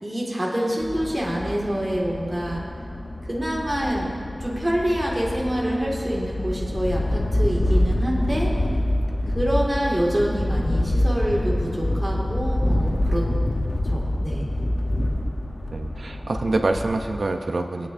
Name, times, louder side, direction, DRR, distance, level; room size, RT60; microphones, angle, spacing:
voice 1, 0.0-2.6 3.3-8.5 9.3-13.3 13.9-14.4, equal, 25° right, -4 dB, 2.0 m, -26 dB
sound 1, 0.8-17.2, left 1 dB, 45° left, 0.8 m, -26 dB
voice 2, 15.7-17.9, right 2 dB, 80° right, 5 dB, 0.6 m, -25 dB
20.0 x 9.1 x 2.6 m, 2.3 s
wide cardioid pair, 75°, 0 cm